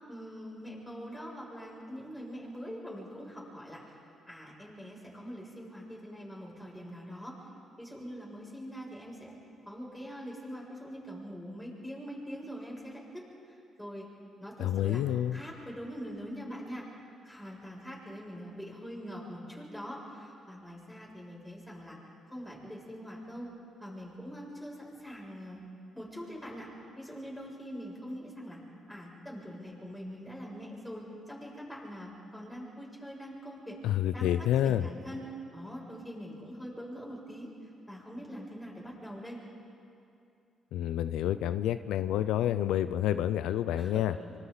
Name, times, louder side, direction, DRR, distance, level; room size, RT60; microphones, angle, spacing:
voice 1, 0.1-4.0 4.3-7.4 7.8-9.4 9.7-14.1 14.4-15.0 15.3-16.9 17.2-22.0 22.3-23.5 23.8-25.6 26.0-26.7 27.0-28.6 28.9-33.8 34.1-39.4 43.8-44.3, equal, 5° left, -4 dB, 7.1 m, -43 dB
voice 2, 14.6-15.4 33.8-34.8 40.7-44.1, left 11 dB, 90° left, 12 dB, 0.5 m, -28 dB
26.0 x 25.0 x 4.1 m, 2.6 s
cardioid pair, 90°, 0 cm